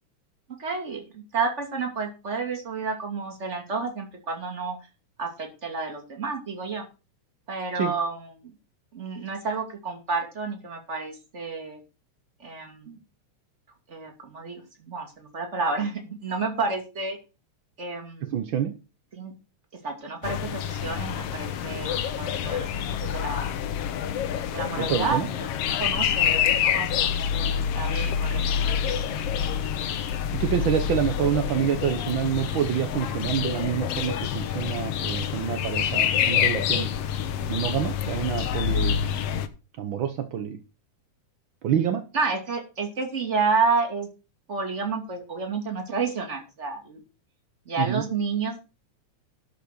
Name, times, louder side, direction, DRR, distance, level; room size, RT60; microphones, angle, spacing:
voice 1, 0.6-4.8 5.2-6.8 7.5-8.3 8.9-11.8 12.4-13.0 13.9-17.2 17.8-18.3 19.1-19.3 19.8-23.5 24.5-25.5 25.8-28.4 29.1-29.5 42.1-44.1 44.5-47.0 47.7-48.6, right 4 dB, 25° right, 3 dB, 2.6 m, -30 dB
voice 2, 18.2-18.7 24.8-25.3 30.3-36.9 37.5-39.0 39.8-40.6 41.6-42.0 47.8-48.0, right 9 dB, 65° right, 8 dB, 1.3 m, -27 dB
sound 1, 20.2-39.5, left 9 dB, 65° left, 1.7 m, -27 dB
12.5 x 5.7 x 6.6 m, 0.31 s
omnidirectional pair, 3.5 m